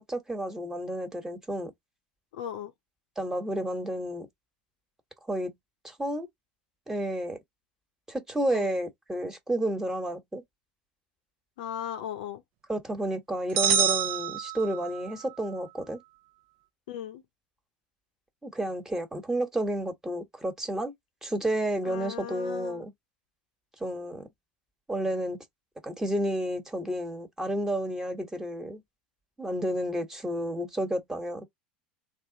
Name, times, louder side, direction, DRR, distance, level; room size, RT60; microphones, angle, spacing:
voice 1, 0.0-1.7 3.2-4.3 5.3-5.5 5.8-6.3 6.9-7.4 8.1-10.4 12.7-16.0 18.4-20.9 21.2-22.9 23.8-24.2 24.9-25.4 25.8-28.8 29.4-31.4, right 1 dB, 10° right, 1.3 m, -31 dB
voice 2, 2.3-2.7 8.5-8.7 11.6-12.4 16.9-17.2 21.8-22.9, left 9 dB, 70° left, 0.7 m, -37 dB
sound 1, 13.6-15.1, right 8 dB, 55° right, 0.7 m, -26 dB
3.2 x 2.5 x 3.9 m
hypercardioid pair, 75°, 5 cm